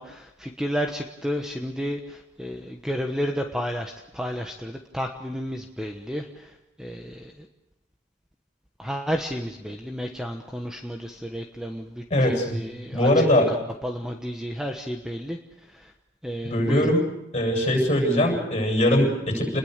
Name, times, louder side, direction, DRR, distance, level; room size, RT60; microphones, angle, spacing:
voice 1, 0.0-7.5 8.8-13.6 13.8-15.4 15.7-15.9 16.2-16.9, equal, 5° right, 3 dB, 1.2 m, -32 dB
voice 2, 12.1-12.6 12.9-13.5 16.4-17.0 17.3-19.6, left 1 dB, 30° left, 2 dB, 7.6 m, -21 dB
29.0 x 21.5 x 6.7 m, 0.92 s
head